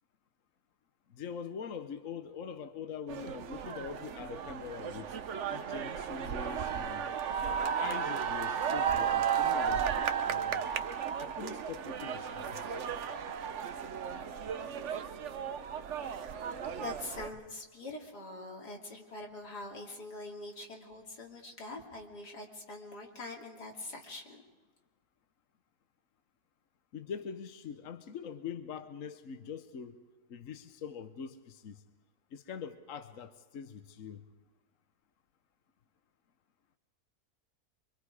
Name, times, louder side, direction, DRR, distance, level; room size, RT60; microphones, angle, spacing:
voice 1, 1.1-5.2 5.5-7.1 7.5-10.6 11.2-12.6 26.9-30.0 30.3-31.8 32.3-34.2, left 6 dB, 60° left, 9 dB, 1.3 m, -43 dB
sound 1, 3.1-17.3, right 7 dB, 55° right, 1.1 m, -34 dB
voice 2, 16.7-24.4, left 2 dB, 85° left, 0 dB, 3.5 m, -44 dB
25.5 x 25.0 x 4.9 m, 1.3 s
omnidirectional pair, 1.7 m